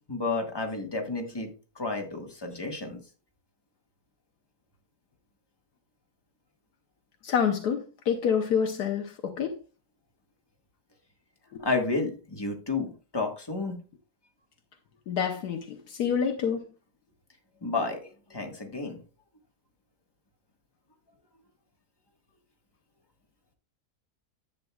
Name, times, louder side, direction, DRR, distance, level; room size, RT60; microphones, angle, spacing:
voice 1, 0.1-1.5 1.7-3.0 11.6-13.8 17.6-19.0, left 3 dB, 15° left, 1.4 m, -31 dB
voice 2, 7.2-9.6 11.5-11.6 15.1-16.6, left 7 dB, 75° left, 1.4 m, -27 dB
10.5 x 8.2 x 2.3 m
omnidirectional pair, 1.7 m